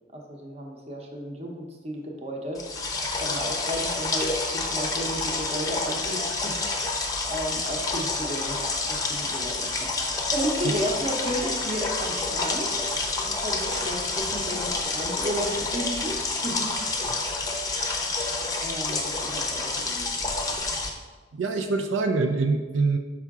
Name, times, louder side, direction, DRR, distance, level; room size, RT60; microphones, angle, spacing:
voice 1, 0.1-2.6 3.2-6.6 7.3-8.6 8.9-12.8 13.2-16.2 16.4-16.7 18.6-20.1, equal, 35° right, 0 dB, 0.8 m, -33 dB
sound 1, 2.5-20.9, left 3 dB, 20° left, 0.6 m, -28 dB
voice 2, 21.3-23.0, right 3 dB, 85° right, 5 dB, 0.4 m, -25 dB
5.7 x 4.8 x 3.6 m, 1.4 s
head